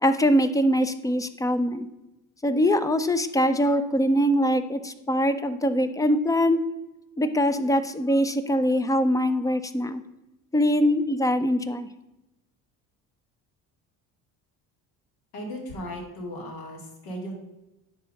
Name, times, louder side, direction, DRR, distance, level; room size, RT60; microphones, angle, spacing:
voice 1, 0.0-1.9 2.4-6.6 7.2-10.0 10.5-11.9, equal, 10° left, 11 dB, 0.4 m, -23 dB
voice 2, 15.3-17.3, equal, 80° left, 1 dB, 2.4 m, -36 dB
10.0 x 3.8 x 5.2 m, 0.96 s
cardioid pair, 125°, 36 cm